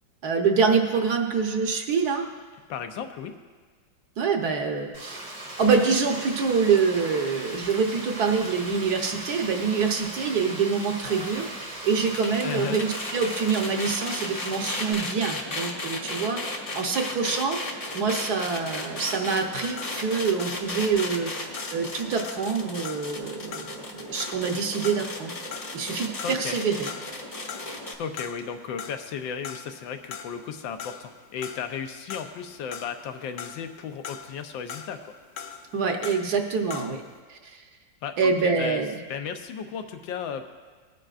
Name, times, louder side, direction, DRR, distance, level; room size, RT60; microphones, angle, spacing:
voice 1, 0.2-2.2 4.2-11.4 11.8-17.6 17.9-25.3 25.7-26.9 35.7-37.0 37.3-37.6 38.2-39.0, right 5 dB, 60° right, 3 dB, 1.4 m, -26 dB
voice 2, 2.7-3.3 12.4-12.8 26.2-26.6 27.8-35.0 38.0-38.8 39.1-40.5, left 7 dB, 90° left, 7 dB, 1.5 m, -34 dB
Frying (food), 4.9-14.9, right 1 dB, 85° right, 4.2 m, -38 dB
sound 1, 11.0-27.9, left 2 dB, 30° left, 0.6 m, -36 dB
sound 2, 18.9-25.9 26.2-27.2 27.5-28.5 28.8-37.1, left 7 dB, 65° left, 1.1 m, -42 dB
19.0 x 9.0 x 2.5 m, 1.4 s
omnidirectional pair, 2.0 m